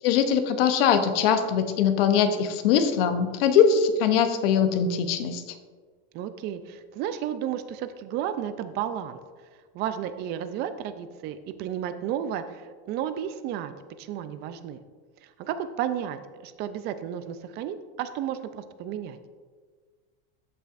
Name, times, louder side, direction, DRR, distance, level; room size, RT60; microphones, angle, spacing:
voice 1, 0.0-5.4, left 7 dB, 65° left, 9 dB, 0.8 m, -22 dB
voice 2, 6.1-9.2 9.7-14.8 15.2-19.2, right 10 dB, 35° right, 11 dB, 0.4 m, -33 dB
14.0 x 5.6 x 2.5 m, 1.5 s
supercardioid pair, 150°, 30 cm